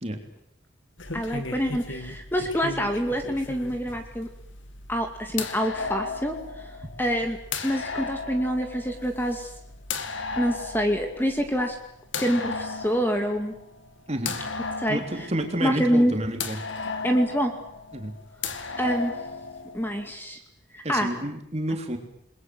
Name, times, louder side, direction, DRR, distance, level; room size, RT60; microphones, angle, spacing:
sound 1, 1.0-20.1, left 4 dB, 75° left, 2.4 m, -36 dB
voice 1, 1.1-4.3 4.9-6.7 7.0-7.4 7.6-9.5 10.4-11.8 12.2-13.5 14.8-15.3 15.6-16.1 17.0-17.5 18.8-19.1 19.7-20.4 20.7-21.1, equal, 10° left, 5 dB, 2.2 m, -26 dB
voice 2, 14.9-16.6 17.9-18.1 20.8-22.0, right 1 dB, 30° right, 5 dB, 3.3 m, -29 dB
29.0 x 21.5 x 7.8 m, 0.77 s
head